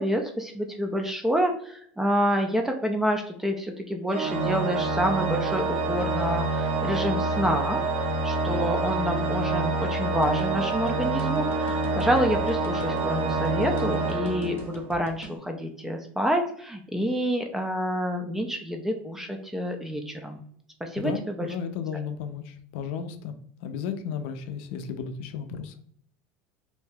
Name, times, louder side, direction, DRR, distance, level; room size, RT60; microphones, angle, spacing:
voice 1, 0.0-7.8 8.2-20.4 20.8-21.5, equal, 5° right, 4 dB, 0.3 m, -28 dB
Organ, 4.1-15.0, right 3 dB, 55° right, 0.6 m, -27 dB
sound 1, 10.2-15.4, left 2 dB, 35° left, 0.7 m, -43 dB
voice 2, 21.0-25.7, left 7 dB, 70° left, 8 dB, 0.4 m, -34 dB
2.6 x 2.2 x 3.3 m, 0.63 s
supercardioid pair, 135°, 6 cm